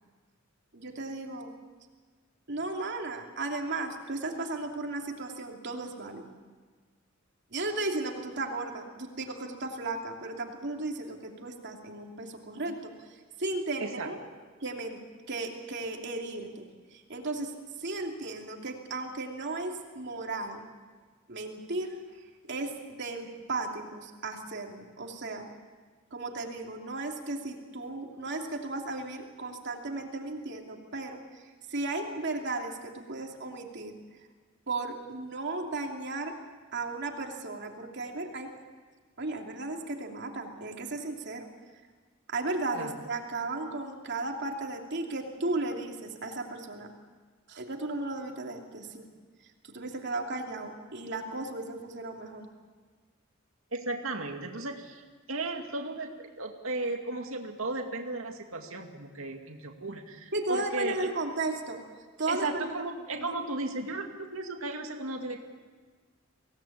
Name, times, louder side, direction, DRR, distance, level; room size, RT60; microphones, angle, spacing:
voice 1, 0.7-1.5 2.5-6.3 7.5-12.9 13.4-14.2 14.6-15.0 15.3-20.6 21.3-22.0 22.4-25.5 26.1-31.2 31.7-33.9 34.7-36.4 36.7-38.5 39.2-41.5 42.3-46.9 47.5-49.1 49.6-52.5 60.3-61.8 62.2-62.5 63.1-63.3, right 2 dB, 60° right, 2 dB, 2.8 m, -35 dB
voice 2, 13.8-14.1 42.7-43.0 53.7-55.0 55.3-61.1 62.3-65.4, right 2 dB, 80° right, 3 dB, 2.4 m, -35 dB
25.0 x 18.0 x 8.7 m, 1.5 s
head